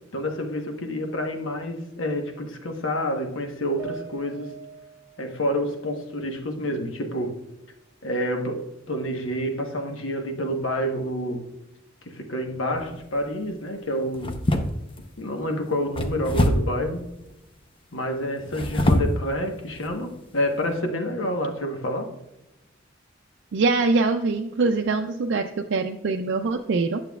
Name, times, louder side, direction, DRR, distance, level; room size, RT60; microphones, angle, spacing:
voice 1, 0.1-4.5 5.2-7.4 8.0-11.5 12.0-14.4 15.2-17.1 17.9-22.1, equal, 80° left, 4 dB, 1.1 m, -28 dB
sound 1, 3.8-7.2 7.6-8.6, right 6 dB, 15° right, 1.6 m, -45 dB
sound 2, 12.7-13.1 14.1-15.1 15.9-16.8 18.4-19.2 19.8-19.9 20.4-20.6, left 1 dB, 25° left, 0.7 m, -24 dB
voice 2, 23.5-27.0, right 3 dB, 65° right, 4 dB, 0.4 m, -23 dB
9.0 x 6.8 x 2.3 m, 0.92 s
head